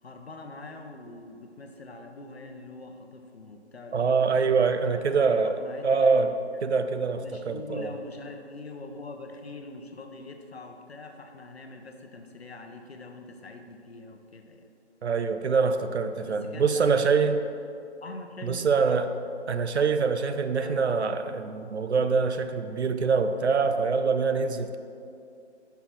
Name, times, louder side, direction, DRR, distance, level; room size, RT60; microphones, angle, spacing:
voice 1, 0.0-6.6 7.2-14.7 16.2-17.3 18.0-18.7 19.7-19.9 20.6-20.8, left 3 dB, 60° left, 5 dB, 0.7 m, -43 dB
voice 2, 3.9-5.6 5.8-6.3 6.6-7.9 15.0-17.4 18.4-19.1 19.5-24.8, right 5 dB, 70° right, 9 dB, 0.5 m, -24 dB
5.7 x 4.3 x 5.9 m, 2.5 s
figure-of-eight pair, 175°, 35 cm